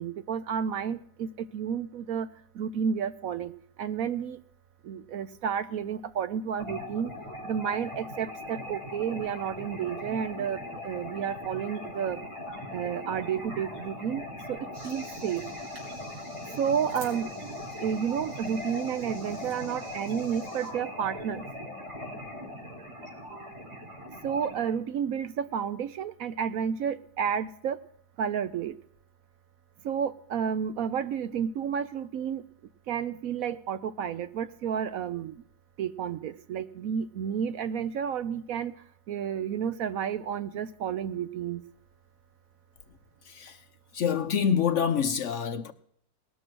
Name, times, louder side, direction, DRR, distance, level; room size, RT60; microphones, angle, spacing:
voice 1, 0.0-2.3 2.5-3.5 3.8-4.4 4.8-7.1 7.4-12.2 12.7-15.4 16.6-17.3 17.8-21.4 23.3-23.6 24.2-27.8 28.2-28.7 29.8-32.4 32.9-35.4 35.8-38.7 39.1-41.6, right 8 dB, 65° right, 1.0 m, -31 dB
sound 1, 6.6-24.7, left 1 dB, 15° right, 3.9 m, -40 dB
sound 2, 14.7-20.7, right 1 dB, 45° right, 3.7 m, -50 dB
voice 2, 43.2-43.6 43.9-45.7, left 7 dB, 55° left, 0.9 m, -26 dB
19.0 x 6.4 x 6.1 m
omnidirectional pair, 1.7 m